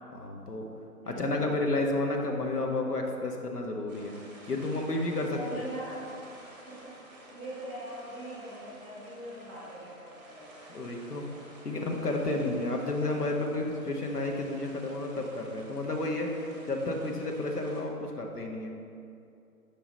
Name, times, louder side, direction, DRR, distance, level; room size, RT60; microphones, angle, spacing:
voice 1, 0.1-0.7 1.1-4.1 4.5-5.7 10.7-11.2 11.6-18.7, left 2 dB, 85° left, 2 dB, 1.1 m, -31 dB
voice 2, 1.0-1.4 5.2-6.1 6.7-10.5, right 1 dB, 5° right, -7 dB, 1.1 m, -42 dB
sound 1, 3.9-17.8, right 1 dB, 25° right, 1.0 m, -52 dB
5.8 x 4.2 x 5.2 m, 2.6 s
figure-of-eight pair, 150°, 46 cm